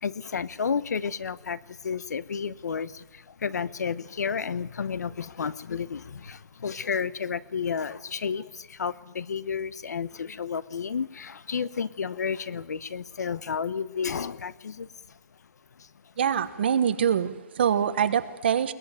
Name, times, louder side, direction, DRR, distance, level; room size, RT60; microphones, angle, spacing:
voice 1, 0.0-15.2 15.8-15.9, left 6 dB, 60° left, 18 dB, 0.9 m, -32 dB
voice 2, 16.2-18.7, right 8 dB, 35° right, 11 dB, 1.1 m, -24 dB
21.5 x 20.0 x 8.9 m, 1.1 s
hypercardioid pair, 180°, 10 cm